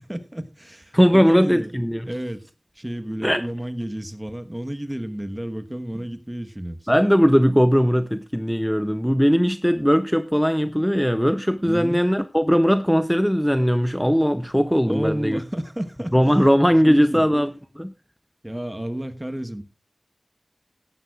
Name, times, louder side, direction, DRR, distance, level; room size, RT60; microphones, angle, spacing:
voice 1, 0.0-1.7 2.1-2.5 2.8-6.8 11.7-12.1 14.9-16.2 16.8-17.3 18.4-19.6, right 1 dB, 15° right, 1.1 m, -31 dB
voice 2, 0.9-2.1 3.2-3.4 6.9-15.4 16.1-17.9, equal, ahead, 0.5 m, -19 dB
15.5 x 11.0 x 2.4 m
wide cardioid pair, 50°, 0 cm